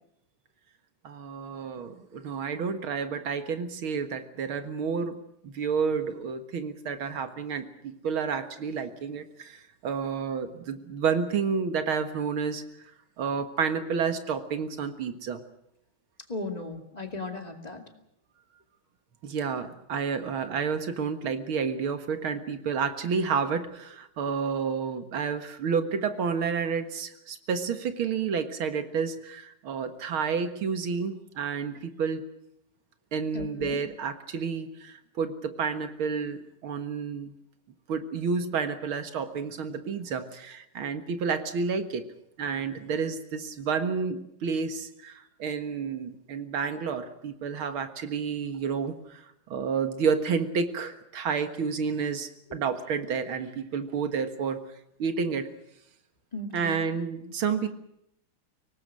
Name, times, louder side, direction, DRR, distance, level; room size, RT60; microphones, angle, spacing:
voice 1, 1.0-5.2 5.4-12.6 13.2-15.4 19.2-32.2 33.1-37.3 37.9-42.1 42.4-49.2 49.5-54.6 55.0-55.5 56.5-57.7, right 6 dB, 85° right, 9 dB, 2.4 m, -30 dB
voice 2, 16.3-17.9 33.3-33.8 56.3-56.8, left 2 dB, 20° left, 5 dB, 2.4 m, -36 dB
24.5 x 18.5 x 7.6 m, 0.78 s
omnidirectional pair, 2.2 m